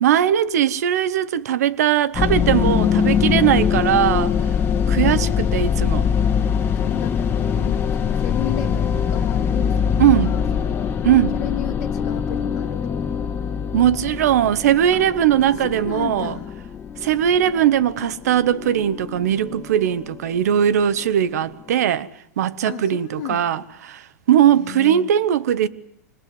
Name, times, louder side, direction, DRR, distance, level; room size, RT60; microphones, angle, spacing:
voice 1, 0.0-4.3 4.9-6.1 10.0-10.3 11.0-11.4 13.7-16.4 17.0-22.1 22.4-25.7, right 10 dB, 75° right, 1.2 m, -19 dB
sound 1, 2.1-20.5, left 7 dB, 25° left, 1.8 m, -23 dB
voice 2, 4.9-5.4 6.7-11.0 11.3-13.3 14.9-15.0 15.5-16.5 22.6-23.6 24.4-25.1, left 13 dB, 60° left, 2.0 m, -33 dB
26.0 x 20.5 x 7.9 m
hypercardioid pair, 115°, 9 cm